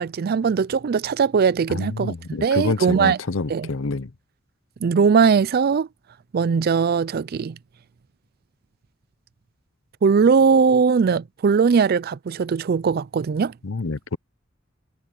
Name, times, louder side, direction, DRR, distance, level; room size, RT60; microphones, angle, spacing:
voice 1, 0.0-2.1 2.4-3.2 3.5-3.7 4.8-5.9 6.3-7.6 10.0-13.5, right 5 dB, 50° right, 0.4 m, -19 dB
voice 2, 1.7-4.1 13.6-14.2, left 3 dB, 80° left, 0.7 m, -27 dB
head